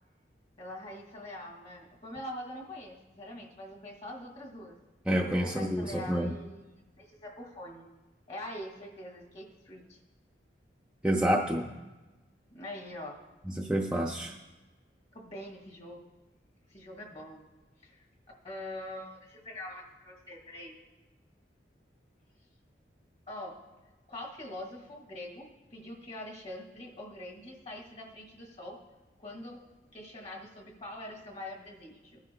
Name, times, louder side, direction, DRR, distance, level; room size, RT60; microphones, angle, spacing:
voice 1, 0.6-4.8 5.4-6.7 7.0-7.9 8.3-10.0 12.5-13.2 15.1-16.1 16.7-17.4 17.8-18.0 18.4-20.7 23.3-23.6 24.1-28.8 29.2-29.6 29.9-32.2, left 1 dB, 35° left, 1 dB, 2.1 m, -44 dB
voice 2, 5.1-6.3 11.0-11.7 13.5-14.4, equal, 5° right, -2 dB, 0.6 m, -28 dB
23.0 x 9.5 x 2.3 m, 1.2 s
head